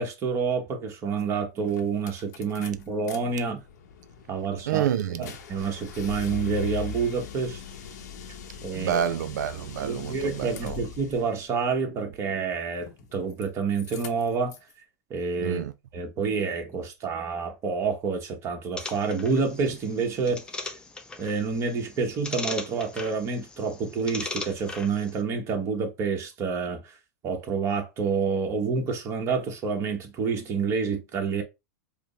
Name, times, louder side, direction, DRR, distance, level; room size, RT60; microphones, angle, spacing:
voice 1, 0.0-3.6 4.3-4.9 5.2-7.6 8.6-9.0 9.8-14.5 15.1-15.6 15.9-20.7 21.2-27.0 27.2-31.4, right 5 dB, 30° right, 1.0 m, -28 dB
sound 1, 1.2-1.3 1.6-3.2 3.5-11.3 12.8-13.5 13.7-14.7, left 6 dB, 75° left, 0.8 m, -40 dB
voice 2, 4.7-5.4 8.7-10.8 15.4-15.7, right 9 dB, 85° right, 0.4 m, -28 dB
sound 2, 18.8-25.2, left 3 dB, 10° left, 0.4 m, -39 dB
4.8 x 2.0 x 3.1 m
supercardioid pair, 140°, 9 cm